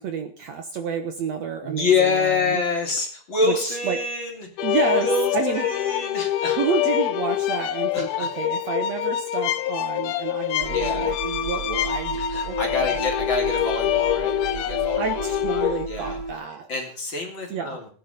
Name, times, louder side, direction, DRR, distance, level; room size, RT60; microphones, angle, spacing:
voice 1, 0.0-2.6 3.4-4.0 4.6-5.7 6.5-13.0 15.0-16.7 17.5-17.8, right 6 dB, 60° right, 7 dB, 2.1 m, -30 dB
voice 2, 1.6-4.5 5.0-6.6 7.9-8.3 10.7-11.1 12.2-16.2 16.7-17.9, left 4 dB, 35° left, 0 dB, 4.1 m, -26 dB
sound 1, 4.6-15.9, left 13 dB, 75° left, 2.2 m, -25 dB
sound 2, 10.6-16.3, right 3 dB, 45° right, 1.2 m, -32 dB
17.5 x 10.0 x 5.2 m, 0.44 s
omnidirectional pair, 3.9 m